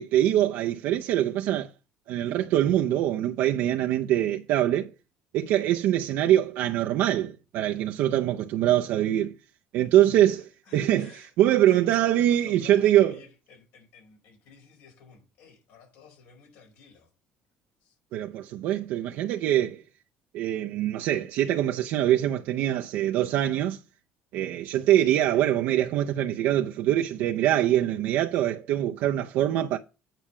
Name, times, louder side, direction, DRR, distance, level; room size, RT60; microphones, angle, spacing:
voice 1, 0.0-1.7 2.1-4.9 5.3-9.3 9.7-10.4 10.7-13.1 18.1-19.8 20.3-23.8 24.3-29.8, right 12 dB, 75° right, 0.6 m, -24 dB
voice 2, 10.0-17.1 17.8-18.0, left 6 dB, 80° left, 4.9 m, -51 dB
9.1 x 5.0 x 5.6 m
cardioid pair, 105°, 4 cm